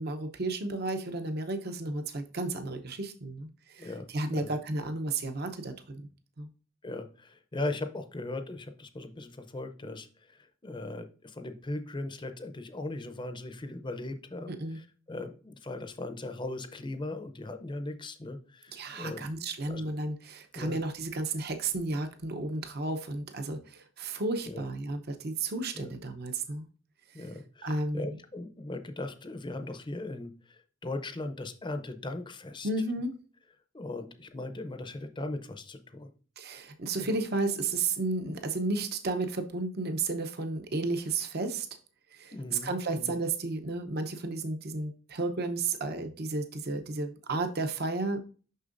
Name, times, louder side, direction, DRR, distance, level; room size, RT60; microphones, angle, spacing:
voice 1, 0.0-6.0 6.4-6.5 14.5-14.8 18.7-26.7 27.6-28.2 32.6-33.2 36.4-41.7 42.1-48.3, right 3 dB, 50° right, 7 dB, 0.8 m, -33 dB
voice 2, 3.8-4.5 6.8-19.9 20.5-20.8 24.5-24.6 25.7-25.9 27.1-32.7 33.7-36.1 36.9-37.2 42.3-43.1, left 2 dB, 25° left, 8 dB, 0.6 m, -39 dB
6.5 x 5.9 x 2.6 m, 0.38 s
head